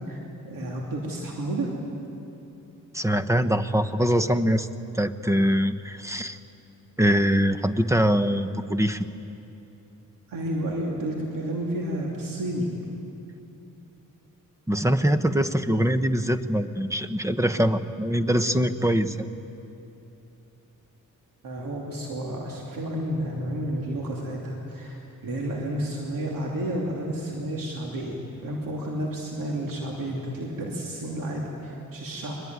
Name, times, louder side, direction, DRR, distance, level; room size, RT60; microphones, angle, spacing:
voice 1, 0.4-1.7 10.3-12.7 21.4-28.1 28.4-32.3, right 1 dB, 85° right, -2 dB, 3.0 m, -31 dB
voice 2, 2.9-4.7 4.9-6.4 7.0-9.0 14.7-19.2, equal, 10° right, 10 dB, 1.0 m, -23 dB
23.0 x 21.0 x 9.6 m, 2.9 s
cardioid pair, 90°, 32 cm